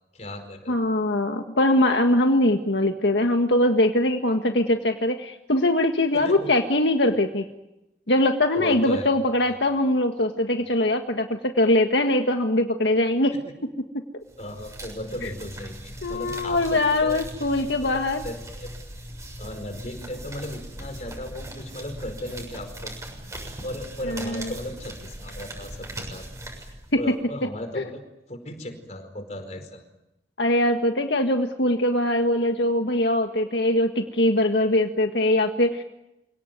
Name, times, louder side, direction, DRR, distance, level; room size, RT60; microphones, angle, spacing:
voice 1, 0.1-0.8 6.1-6.5 8.6-9.1 14.4-17.2 17.5-18.8 19.4-22.9 23.6-26.3 27.0-28.0 28.3-29.8, left 1 dB, 40° left, 7 dB, 4.8 m, -36 dB
voice 2, 0.7-7.4 8.1-13.3 15.2-15.3 16.0-18.2 24.0-24.5 26.9-27.1 27.8-27.9 30.4-35.8, left 1 dB, 80° left, 4 dB, 1.7 m, -22 dB
sound 1, 14.3-27.2, right 1 dB, 20° right, 7.0 m, -39 dB
28.0 x 18.0 x 9.4 m, 0.91 s
head